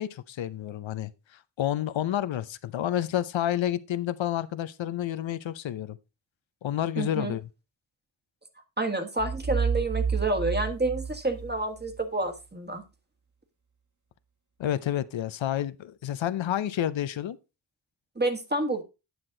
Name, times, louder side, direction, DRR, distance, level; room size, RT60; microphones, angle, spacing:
voice 1, 0.0-6.0 6.6-7.4 14.6-17.4, left 11 dB, 80° left, 0.7 m, -30 dB
voice 2, 7.0-7.3 8.8-12.8 18.2-18.8, right 2 dB, 20° right, 1.6 m, -29 dB
sound 1, 9.2-12.0, right 6 dB, 40° right, 2.0 m, -30 dB
9.5 x 6.0 x 3.8 m
wide cardioid pair, 80°, 46 cm